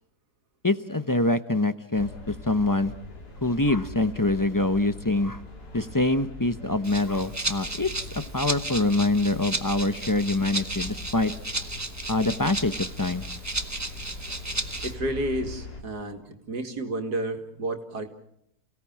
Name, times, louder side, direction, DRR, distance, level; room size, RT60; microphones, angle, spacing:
voice 1, 0.6-2.9 3.4-5.4 5.7-7.9 8.3-11.3 12.1-13.2, left 2 dB, 20° left, 11 dB, 0.5 m, -25 dB
sound 1, 1.9-15.8, left 2 dB, 85° left, 3.7 m, -41 dB
Rattle (instrument), 6.8-14.9, right 2 dB, 15° right, 0.9 m, -34 dB
voice 2, 14.8-18.1, right 1 dB, 90° right, 5 dB, 2.8 m, -31 dB
29.5 x 17.0 x 7.4 m, 0.75 s
omnidirectional pair, 1.7 m